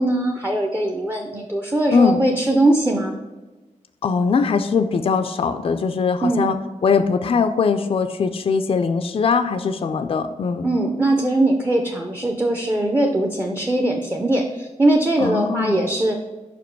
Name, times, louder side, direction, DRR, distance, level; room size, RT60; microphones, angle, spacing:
voice 1, 0.0-3.1 6.2-6.5 10.6-16.2, right 1 dB, 15° right, 2 dB, 0.5 m, -20 dB
voice 2, 4.0-6.5 6.8-10.7 15.2-15.8, left 5 dB, 45° left, 8 dB, 0.4 m, -21 dB
5.3 x 5.0 x 4.5 m, 1.2 s
wide cardioid pair, 160°, 14 cm